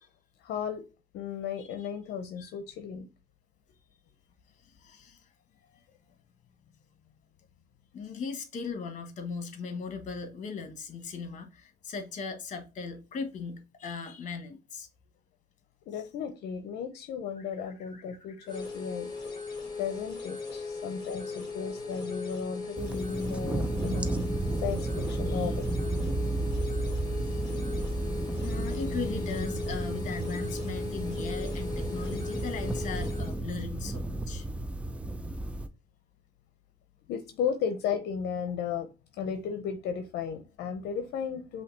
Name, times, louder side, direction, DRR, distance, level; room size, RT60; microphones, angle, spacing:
voice 1, 0.4-0.8 1.1-3.1 15.9-19.1 19.8-24.1 24.6-25.7 37.1-38.9 39.2-41.6, left 7 dB, 75° left, 0.7 m, -34 dB
voice 2, 1.6-1.9 2.4-2.5 4.6-5.2 7.9-14.9 17.4-18.6 27.1-27.6 28.4-34.5, left 5 dB, 45° left, 1.3 m, -38 dB
sound 1, 18.5-33.4, left 4 dB, 25° left, 1.9 m, -38 dB
sound 2, 22.8-35.7, right 2 dB, 5° right, 0.5 m, -33 dB
5.7 x 2.8 x 3.3 m
cardioid pair, 110°, 17 cm